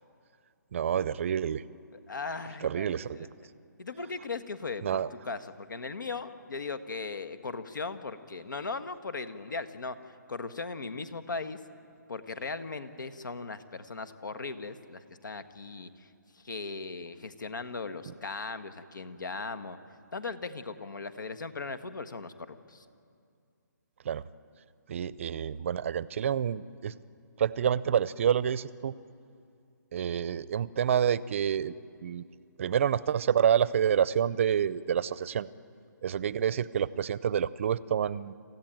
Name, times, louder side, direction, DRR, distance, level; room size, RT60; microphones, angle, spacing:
voice 1, 0.7-1.6 2.6-3.3 4.8-5.1 24.0-24.2 24.9-26.9 27.4-28.9 29.9-31.7 32.0-32.2 32.6-35.5 36.0-38.3, right 8 dB, 40° right, 19 dB, 0.6 m, -28 dB
voice 2, 2.1-3.5 3.8-11.6 12.1-19.8 20.1-22.8, left 4 dB, 75° left, 12 dB, 1.5 m, -38 dB
27.5 x 15.0 x 9.1 m, 2.4 s
hypercardioid pair, 155°, 10 cm